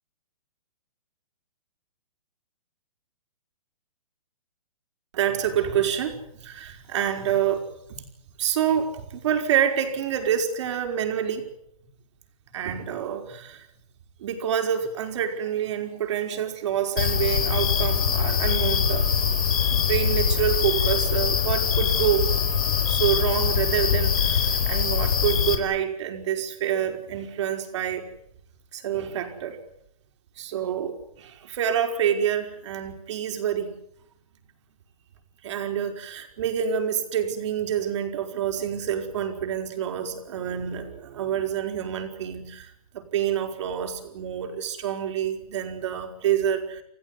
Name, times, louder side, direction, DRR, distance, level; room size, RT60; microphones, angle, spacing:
voice 1, 5.1-6.2 6.4-7.6 8.4-11.4 12.5-13.6 14.2-19.1 19.7-22.3 22.9-28.0 28.7-29.6 30.4-30.9 31.2-33.7 35.4-42.7 42.9-46.8, right 9 dB, 50° right, 6 dB, 5.2 m, -27 dB
sound 1, 17.0-25.6, left 7 dB, 70° left, 4.7 m, -23 dB
29.5 x 16.0 x 9.8 m, 0.74 s
hypercardioid pair, 150°, 19 cm